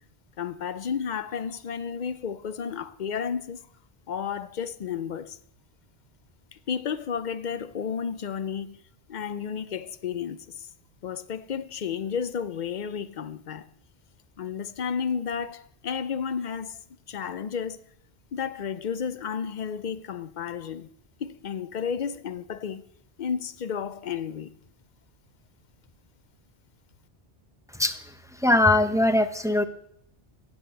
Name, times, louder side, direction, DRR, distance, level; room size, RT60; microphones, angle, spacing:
voice 1, 0.4-3.6 4.1-5.4 6.5-8.8 9.1-10.7 11.0-13.7 14.4-16.8 17.1-17.8 18.3-20.9 21.2-22.8 23.2-24.5, left 7 dB, 55° left, 0.6 m, -32 dB
voice 2, 28.4-29.7, left 2 dB, 5° right, 0.5 m, -21 dB
10.5 x 8.8 x 7.8 m
omnidirectional pair, 1.1 m